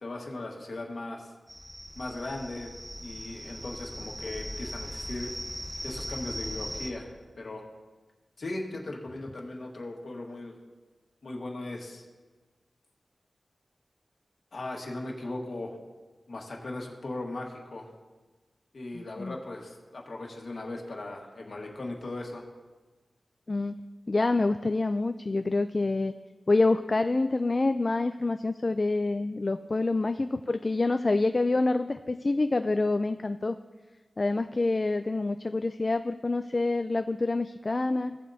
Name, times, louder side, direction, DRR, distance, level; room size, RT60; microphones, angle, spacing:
voice 1, 0.0-1.3 1.9-2.7 3.0-5.3 5.8-7.6 8.4-10.6 11.2-12.0 14.5-15.8 16.3-17.9 18.7-22.5, left 2 dB, 65° left, 0 dB, 1.5 m, -38 dB
sound 1, 1.5-6.9, equal, 5° right, 1.0 m, -39 dB
voice 2, 18.9-19.4 23.5-23.8 24.1-26.1 26.5-33.6 34.2-38.2, left 2 dB, 40° left, 9 dB, 0.3 m, -27 dB
16.0 x 7.3 x 2.7 m, 1.3 s
wide cardioid pair, 80°, 0 cm